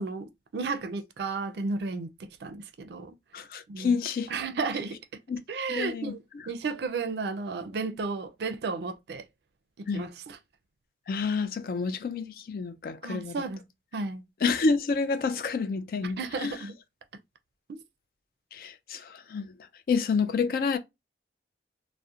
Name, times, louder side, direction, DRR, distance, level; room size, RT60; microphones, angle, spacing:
voice 1, 0.0-3.1 3.7-4.0 4.3-5.0 5.5-6.2 6.5-9.2 9.8-10.4 13.0-13.6 13.9-14.2 16.0-16.7 17.7-17.8, right 4 dB, 70° right, 0.4 m, -33 dB
voice 2, 3.3-4.3 5.3-5.4 5.7-6.1 9.9-10.1 11.1-13.4 14.4-16.5 18.5-19.6 19.9-20.8, left 4 dB, 55° left, 0.3 m, -29 dB
2.7 x 2.0 x 2.3 m
head